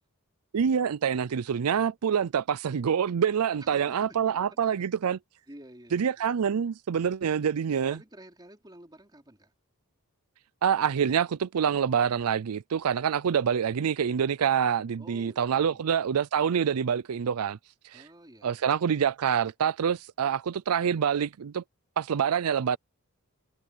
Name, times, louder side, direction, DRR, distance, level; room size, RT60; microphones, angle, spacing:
voice 1, 0.5-5.2 5.9-8.0 10.6-17.6 17.8-18.1 18.4-21.6 22.0-22.8, right 7 dB, 85° right, 0.4 m, -26 dB
voice 2, 3.6-4.8 5.5-6.2 7.9-9.5 15.0-15.8 17.9-18.6, right 1 dB, 20° right, 3.5 m, -51 dB
head